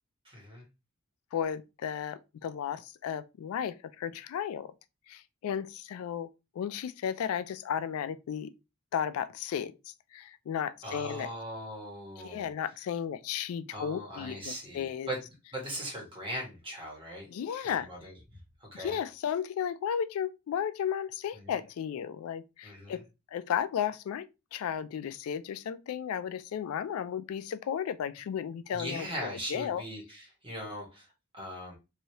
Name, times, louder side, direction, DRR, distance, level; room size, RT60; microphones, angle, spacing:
voice 1, 0.2-0.6 10.8-12.5 13.7-15.2 15.5-17.3 17.6-18.2 18.6-19.0 21.3-21.6 22.6-23.0 28.7-31.1 31.3-31.8, equal, 25° right, 1.4 m, -40 dB
voice 2, 1.3-4.7 5.1-6.3 6.6-8.5 8.9-11.3 12.2-15.1 17.3-17.9 18.8-23.0 23.3-24.3 24.5-29.8, left 8 dB, 70° left, 0.3 m, -34 dB
3.2 x 2.7 x 2.8 m
head